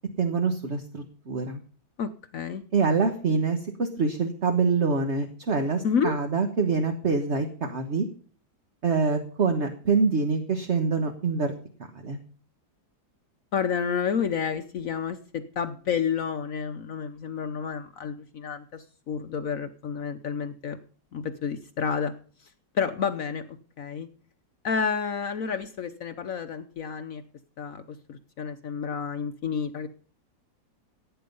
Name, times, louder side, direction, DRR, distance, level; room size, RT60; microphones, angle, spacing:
voice 1, 0.2-1.6 2.7-8.1 8.8-11.5 12.0-12.2, right 4 dB, 45° right, 5 dB, 1.5 m, -25 dB
voice 2, 2.0-2.6 5.8-6.1 13.5-20.8 21.1-22.1 22.7-24.1 24.6-27.2 27.6-29.9, left 6 dB, 60° left, 9 dB, 1.2 m, -30 dB
16.0 x 9.4 x 5.4 m, 0.43 s
omnidirectional pair, 1.7 m